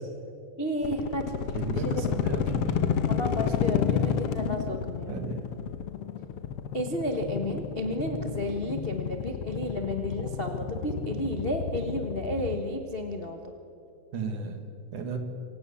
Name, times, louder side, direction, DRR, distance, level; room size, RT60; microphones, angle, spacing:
voice 1, 0.6-1.3 1.8-2.2 3.1-5.1 6.7-13.5, left 1 dB, 85° left, 4 dB, 0.5 m, -32 dB
sound 1, 0.8-12.6, left 7 dB, 65° left, 1.6 m, -31 dB
voice 2, 1.5-2.9 5.1-5.4 14.1-14.6 14.9-15.2, right 4 dB, 70° right, 6 dB, 3.5 m, -34 dB
26.5 x 17.5 x 7.1 m, 2.7 s
omnidirectional pair, 3.7 m